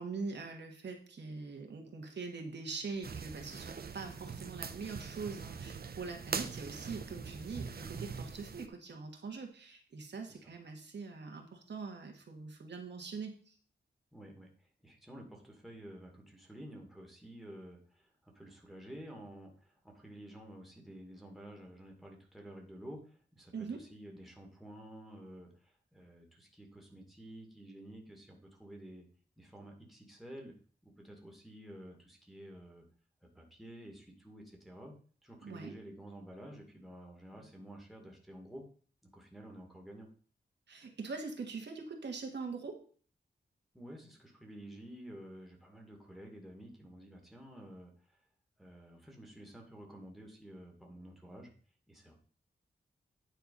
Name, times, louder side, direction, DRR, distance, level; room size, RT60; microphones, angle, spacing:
voice 1, 0.0-13.5 23.5-23.8 35.4-35.7 40.7-42.8, right 4 dB, 75° right, 3 dB, 1.6 m, -43 dB
sound 1, 3.0-8.7, right 5 dB, 60° right, 0.7 m, -42 dB
voice 2, 14.1-29.1 29.4-30.5 30.8-32.8 33.2-38.7 39.0-40.1 43.7-48.2 48.6-51.5 51.9-52.1, right 1 dB, ahead, 0 dB, 2.0 m, -51 dB
9.2 x 4.4 x 5.4 m, 0.44 s
wide cardioid pair, 130°, 18 cm